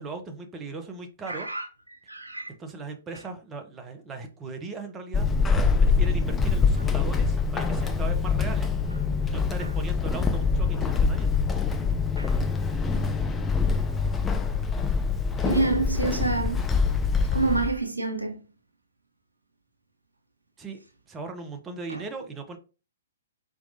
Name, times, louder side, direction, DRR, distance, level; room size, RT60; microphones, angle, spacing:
voice 1, 0.0-1.5 2.5-5.3 5.8-8.7 9.2-11.3 20.6-20.8 21.1-22.6, right 4 dB, 15° right, 0.9 m, -38 dB
voice 2, 1.2-2.5 3.1-3.2 6.8-6.9 9.6-9.7 12.2-12.3 15.4-16.6 17.3-18.4 21.9-22.1, right 3 dB, 90° right, 1.1 m, -28 dB
Walk footsteps / Squeak, 5.1-17.8, left 5 dB, 15° left, 0.5 m, -24 dB
4.5 x 3.5 x 2.7 m
figure-of-eight pair, 120°, 0 cm